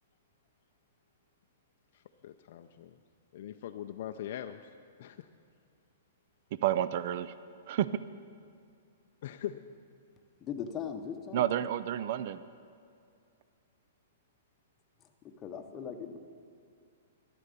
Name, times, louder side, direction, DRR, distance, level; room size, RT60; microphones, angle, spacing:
voice 1, 1.9-2.9 3.3-4.6 5.0-5.2 9.2-9.6, left 11 dB, 50° left, 6 dB, 0.5 m, -41 dB
voice 2, 6.5-7.3 7.7-7.9 11.3-12.4, right 11 dB, 45° right, 15 dB, 0.4 m, -30 dB
voice 3, 10.4-11.4 15.4-16.2, left 7 dB, 15° left, 5 dB, 0.8 m, -39 dB
13.0 x 10.5 x 6.8 m, 2.4 s
hypercardioid pair, 170°, 0 cm